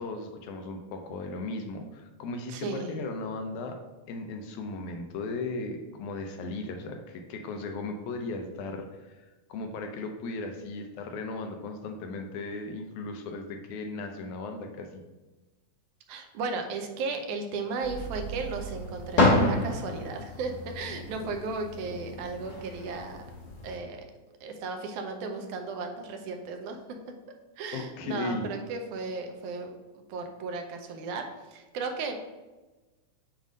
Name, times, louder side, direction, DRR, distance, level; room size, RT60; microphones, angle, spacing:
voice 1, 0.0-3.8 4.1-9.2 9.5-15.0 27.7-28.5, left 3 dB, 80° left, 4 dB, 1.9 m, -36 dB
voice 2, 2.5-3.0 16.1-23.2 23.6-24.0 24.4-26.8 27.6-32.1, right 4 dB, 80° right, 4 dB, 2.1 m, -35 dB
sound 1, 17.8-23.8, left 2 dB, 40° left, 1.7 m, -30 dB
7.3 x 2.6 x 5.0 m, 1.2 s
omnidirectional pair, 3.5 m